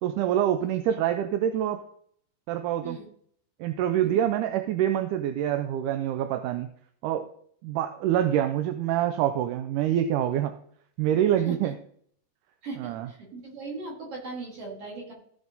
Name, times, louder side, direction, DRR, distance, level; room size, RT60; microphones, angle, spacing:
voice 1, 0.0-1.8 2.5-3.0 3.6-6.7 7.0-7.3 7.6-10.5 11.0-11.7 12.8-13.1, right 11 dB, 80° right, 8 dB, 2.1 m, -26 dB
voice 2, 4.0-4.3 11.5-11.7 12.6-15.1, right 3 dB, 45° right, -2 dB, 4.4 m, -39 dB
15.0 x 6.1 x 4.0 m, 0.62 s
omnidirectional pair, 3.9 m